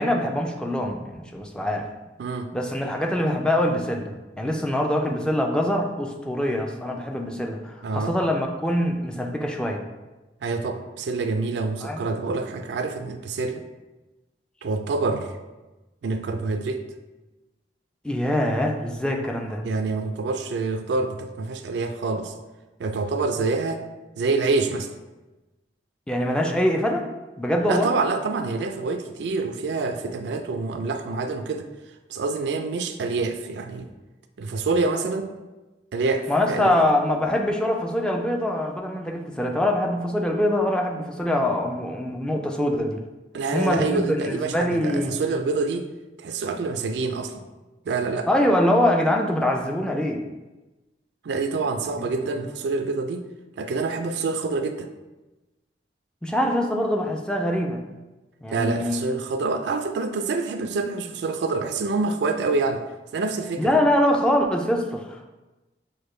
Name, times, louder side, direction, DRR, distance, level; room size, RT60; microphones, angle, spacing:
voice 1, 0.0-1.9 2.5-9.8 11.8-12.0 18.0-19.6 26.1-27.1 27.4-27.9 36.3-43.0 43.5-45.2 48.3-50.3 52.0-52.1 56.2-57.8 58.4-59.0 63.6-65.3, left 1 dB, 5° left, 2 dB, 0.3 m, -24 dB
voice 2, 2.2-2.5 7.8-8.2 10.4-13.6 14.6-15.3 16.0-16.8 19.6-22.3 22.8-23.8 24.2-24.9 27.7-31.7 32.1-33.9 34.4-35.3 35.9-36.8 43.3-45.9 46.2-47.5 47.9-48.3 51.2-53.3 53.6-54.9 58.5-62.8 63.1-63.8, right 3 dB, 70° right, 7 dB, 0.4 m, -26 dB
6.4 x 2.2 x 3.1 m, 1.1 s
head